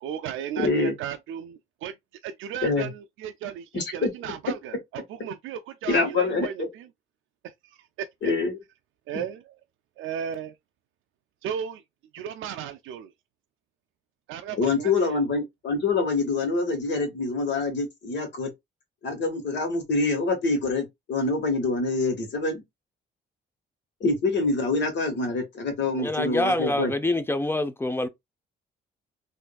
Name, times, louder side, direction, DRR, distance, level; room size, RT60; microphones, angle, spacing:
voice 1, 0.0-1.9 2.2-2.9 3.2-3.5 3.9-4.7 5.1-6.8 8.0-8.1 9.1-9.4 10.0-10.5 11.4-11.8 12.1-13.1 14.3-15.2, right 8 dB, 85° right, 0.4 m, -34 dB
voice 2, 0.6-0.9 2.6-2.9 3.7-4.1 5.9-6.7 8.2-8.6 9.1-9.2 14.6-18.5 19.0-22.6 24.0-26.9, left 3 dB, 65° left, 1.4 m, -25 dB
voice 3, 26.0-28.1, left 1 dB, 10° left, 0.5 m, -26 dB
3.5 x 2.6 x 2.2 m
cardioid pair, 90°, 20 cm